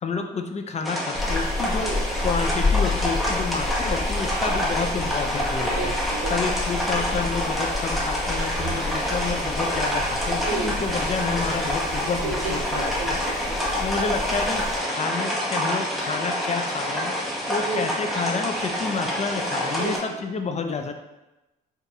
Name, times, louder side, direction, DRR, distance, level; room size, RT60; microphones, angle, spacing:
voice 1, 0.0-1.9 2.2-5.9 6.3-13.2 13.8-17.1 17.5-20.9, left 5 dB, 35° left, 6 dB, 0.4 m, -29 dB
sound 1, 0.8-20.0, equal, ahead, 0.9 m, -27 dB
sound 2, 1.2-14.8, left 3 dB, 20° left, 1.2 m, -30 dB
voice 2, 1.6-2.0 4.4-4.6 5.6-6.4 10.5-10.8 12.0-13.7 17.7-17.8 19.6-20.2, right 4 dB, 85° right, 4 dB, 0.6 m, -33 dB
4.5 x 2.5 x 2.7 m, 0.98 s
cardioid pair, 90°, 20 cm